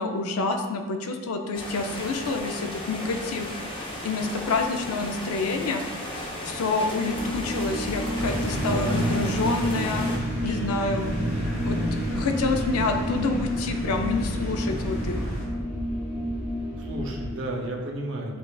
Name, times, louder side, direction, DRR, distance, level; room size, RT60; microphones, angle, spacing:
voice 1, 0.0-3.5 4.0-5.8 6.4-10.1 10.4-11.1 11.6-11.8 12.1-15.2, left 3 dB, 80° left, 5 dB, 0.4 m, -27 dB
sound 1, 1.5-10.2, left 1 dB, 20° left, 0.5 m, -35 dB
sound 2, 7.0-17.3, equal, 5° left, 1.1 m, -31 dB
sound 3, 8.1-15.4, right 1 dB, 45° left, 1.3 m, -31 dB
voice 2, 8.6-9.3 16.8-18.4, right 1 dB, 55° right, 1 dB, 0.6 m, -33 dB
7.1 x 2.4 x 2.3 m, 1.3 s
head